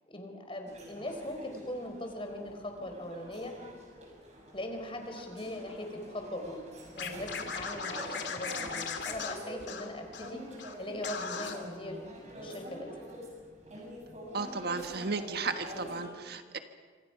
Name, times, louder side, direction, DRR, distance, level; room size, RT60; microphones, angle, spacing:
voice 1, 0.1-3.5 4.5-6.7 6.9-10.4 10.8-12.0 12.4-13.1, left 1 dB, 30° left, 4 dB, 4.1 m, -40 dB
sound 1, 0.7-16.1, right 1 dB, 40° right, 6.5 m, -47 dB
Scratching (performance technique), 7.0-10.3 10.6-10.7 11.0-11.5, left 6 dB, 70° left, 2.7 m, -38 dB
voice 2, 14.3-16.6, right 4 dB, 60° right, 7 dB, 1.5 m, -34 dB
27.0 x 26.5 x 5.8 m, 1.5 s
head